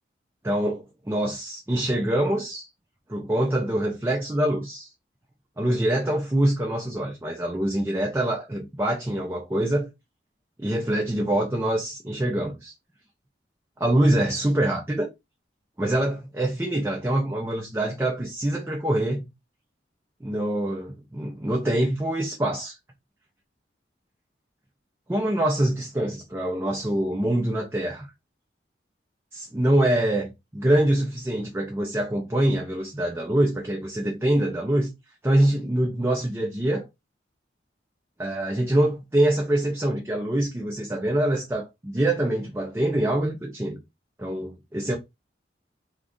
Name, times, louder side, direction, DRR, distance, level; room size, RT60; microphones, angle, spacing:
voice 1, 0.4-2.7 3.1-4.9 5.6-9.9 10.6-12.7 13.8-15.1 15.8-19.3 20.2-22.8 25.1-28.1 29.3-34.9 35.2-36.8 38.2-43.8 44.2-45.0, right 1 dB, 15° right, 0.4 m, -25 dB
2.5 x 2.4 x 3.4 m
head